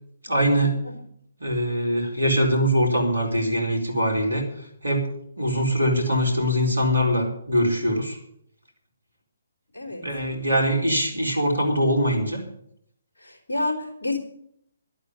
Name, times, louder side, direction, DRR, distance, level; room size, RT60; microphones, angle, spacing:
voice 1, 0.2-0.8 1.4-4.5 4.8-5.1 5.4-8.2 10.0-12.4, equal, 75° right, 2 dB, 4.3 m, -22 dB
voice 2, 9.7-10.0 13.2-14.2, left 2 dB, 65° left, 3 dB, 3.8 m, -29 dB
11.5 x 8.7 x 9.4 m, 0.71 s
figure-of-eight pair, 135°, 0 cm